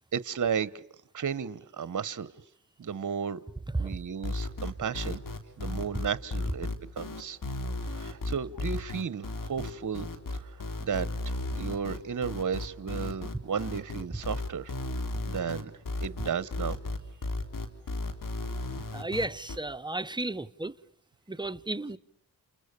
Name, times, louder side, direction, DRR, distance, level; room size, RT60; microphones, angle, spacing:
voice 1, 0.1-0.7 1.1-2.3 2.8-3.4 3.8-5.2 5.6-7.4 7.9-10.1 10.3-10.5 10.8-11.1 11.5-14.7 15.3-15.7 16.0-16.8, right 7 dB, 55° right, 1.2 m, -33 dB
sound 1, 4.2-19.6, left 2 dB, 60° left, 3.6 m, -34 dB
voice 2, 18.9-20.7 21.3-22.0, right 2 dB, 10° right, 1.1 m, -33 dB
29.5 x 29.0 x 6.8 m
cardioid pair, 60°, 37 cm